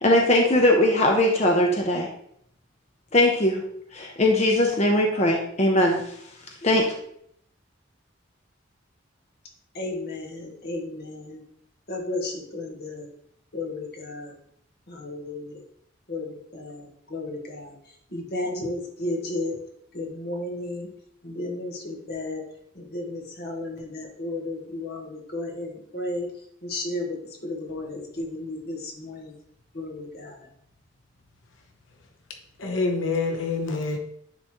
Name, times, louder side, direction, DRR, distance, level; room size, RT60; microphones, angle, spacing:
voice 1, 0.0-2.1 3.1-3.6 3.9-6.0 6.6-6.9, left 1 dB, 35° left, 1 dB, 0.8 m, -20 dB
voice 2, 9.7-11.4 11.9-13.0 13.5-14.3 15.0-15.6 16.1-16.8 17.1-17.7 18.1-19.5 19.9-20.9 21.2-22.4 22.9-26.3 26.7-27.2 27.4-29.3 29.7-30.3, left 2 dB, 55° left, 1 dB, 1.5 m, -33 dB
voice 3, 32.6-34.0, left 3 dB, 85° left, 3 dB, 0.9 m, -26 dB
9.9 x 4.1 x 3.0 m, 0.69 s
head